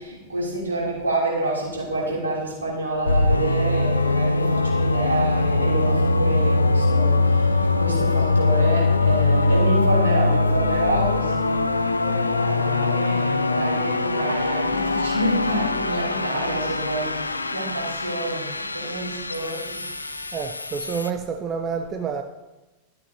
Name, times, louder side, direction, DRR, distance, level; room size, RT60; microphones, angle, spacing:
voice 1, 0.0-7.5 7.8-19.9, right 2 dB, 75° right, 3.1 m, -28 dB
sound 1, 3.1-21.1, left 3 dB, 80° left, 0.4 m, -22 dB
voice 2, 20.3-22.2, right 6 dB, 30° right, 0.6 m, -28 dB
12.5 x 7.7 x 2.9 m
figure-of-eight pair, 90°, 0 cm